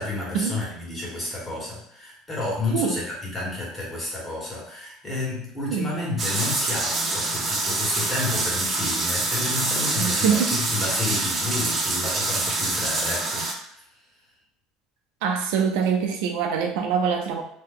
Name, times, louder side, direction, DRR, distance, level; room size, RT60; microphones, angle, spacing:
voice 1, 0.0-13.8, left 2 dB, 20° left, -5 dB, 1.3 m, -31 dB
sound 1, 6.2-13.5, right 2 dB, 30° right, 0.6 m, -26 dB
voice 2, 10.0-10.5 15.2-17.4, right 6 dB, 80° right, 3 dB, 0.5 m, -24 dB
2.8 x 2.1 x 3.7 m, 0.70 s
cardioid pair, 130°, 0 cm